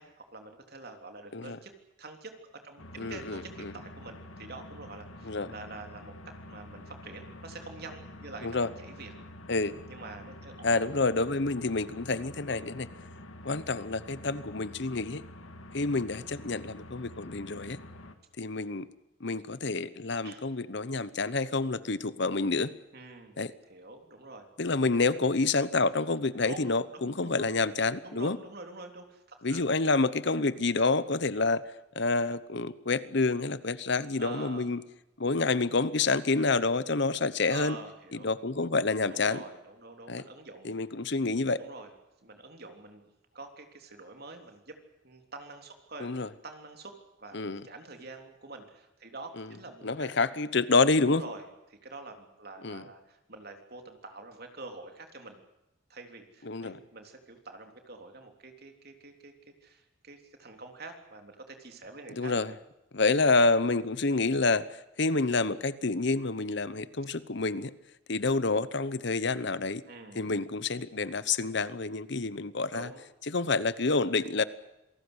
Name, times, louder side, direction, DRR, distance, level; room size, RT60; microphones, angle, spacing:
voice 1, 0.0-1.7 2.0-9.1 9.9-10.8 20.2-20.4 22.9-23.3 23.7-24.5 26.4-26.7 27.0-27.5 28.0-29.7 34.2-34.7 37.5-38.3 39.1-40.8 41.6-41.9 42.2-44.8 45.0-50.2 51.1-55.4 55.9-62.3 69.9-70.3 72.7-73.0, right 3 dB, 50° right, 5 dB, 3.5 m, -46 dB
sound 1, 2.8-18.2, left 1 dB, 75° left, 2.3 m, -47 dB
voice 2, 3.0-3.7 5.2-5.5 8.4-8.7 9.5-9.8 10.6-12.9 13.4-15.2 15.7-17.8 18.4-18.9 19.2-22.7 23.4-23.5 24.6-28.4 29.4-34.8 35.2-37.8 38.1-39.4 40.1-40.2 40.6-41.6 46.0-46.3 47.3-47.6 49.4-49.5 49.8-51.2 52.6-52.8 56.4-56.8 62.1-62.5 62.9-67.7 68.1-69.8 70.1-72.9 73.2-74.4, left 3 dB, 55° left, 16 dB, 0.9 m, -28 dB
27.0 x 18.5 x 8.1 m, 0.93 s
head